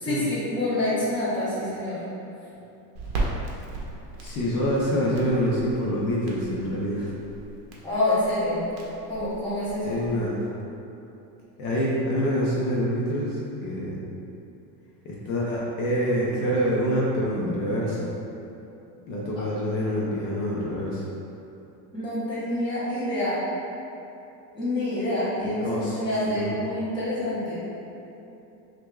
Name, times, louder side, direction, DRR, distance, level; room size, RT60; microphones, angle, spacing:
voice 1, 0.0-2.0 7.8-8.6 9.1-10.0 21.9-23.4 24.5-27.6, left 1 dB, 10° left, -12 dB, 0.8 m, -27 dB
Crackle, 3.0-10.3, right 2 dB, 50° right, 0.7 m, -37 dB
voice 2, 4.2-7.1 9.8-10.5 11.6-13.9 15.0-18.1 19.1-21.0 25.6-26.5, equal, 50° left, -5 dB, 0.7 m, -26 dB
5.9 x 2.5 x 2.3 m, 2.9 s
cardioid pair, 175°, 48 cm